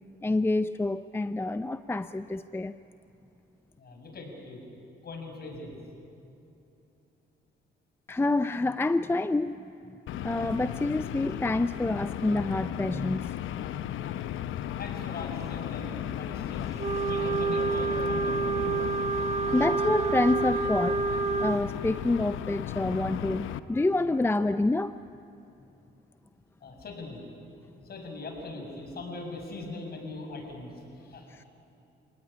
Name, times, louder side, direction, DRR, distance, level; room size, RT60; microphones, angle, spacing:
voice 1, 0.2-2.8 8.1-9.7 10.2-13.4 19.5-21.0 21.4-25.1 31.3-31.4, left 2 dB, 10° left, 12 dB, 0.5 m, -27 dB
voice 2, 3.8-4.6 5.0-5.8 14.8-16.7 17.1-18.8 26.6-27.2 27.8-31.3, left 2 dB, 50° left, 2 dB, 6.4 m, -40 dB
sound 1, 10.1-23.6, left 11 dB, 80° left, 0.9 m, -35 dB
Wind instrument woodwind instrument, 16.8-21.6, right 4 dB, 35° right, 1.4 m, -28 dB
29.5 x 18.0 x 9.9 m, 2.8 s
cardioid pair, 90°, 20 cm